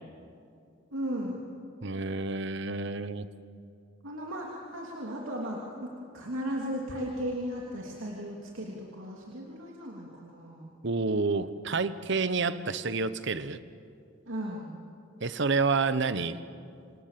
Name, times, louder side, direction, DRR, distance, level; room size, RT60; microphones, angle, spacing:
voice 1, 0.9-1.5 4.0-10.7 14.3-14.7, equal, 85° right, -2 dB, 3.1 m, -36 dB
voice 2, 1.8-3.3 10.8-13.6 15.2-16.4, right 4 dB, 60° right, 13 dB, 1.0 m, -29 dB
28.0 x 26.0 x 7.6 m, 2.4 s
head